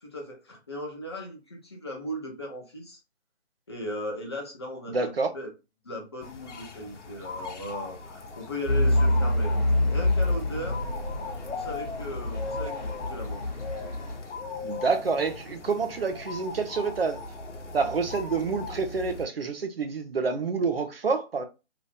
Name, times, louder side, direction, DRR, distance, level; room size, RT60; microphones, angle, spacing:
voice 1, 0.0-3.0 3.7-5.5 5.8-10.8 11.4-13.4, equal, 25° left, 0.7 m, -37 dB
voice 2, 4.9-5.3 14.6-17.2 17.7-21.5, right 4 dB, 55° right, 0.7 m, -28 dB
sound 1, 6.2-19.3, left 4 dB, 80° left, 0.9 m, -39 dB
Truck / Idling, 8.7-14.2, left 1 dB, 40° left, 1.0 m, -26 dB
2.9 x 2.6 x 3.3 m
hypercardioid pair, 165°, 35 cm